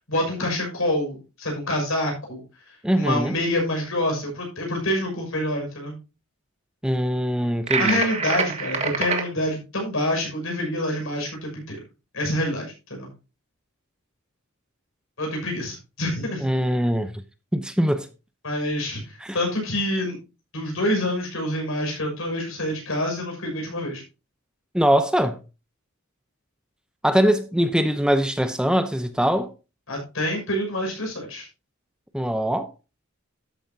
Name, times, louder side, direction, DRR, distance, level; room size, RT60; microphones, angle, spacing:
voice 1, 0.1-2.4 3.0-6.0 7.8-11.8 12.1-13.1 15.2-16.4 18.4-20.2 20.5-24.0 29.9-31.5, left 1 dB, 70° left, 6.2 m, -27 dB
voice 2, 2.8-3.3 6.8-8.0 16.4-17.2 17.5-18.1 19.2-19.3 24.7-25.4 27.0-29.5 32.1-32.7, equal, 5° right, 0.7 m, -22 dB
sound 1, 7.7-9.2, right 5 dB, 30° right, 1.7 m, -25 dB
13.0 x 9.0 x 2.8 m
head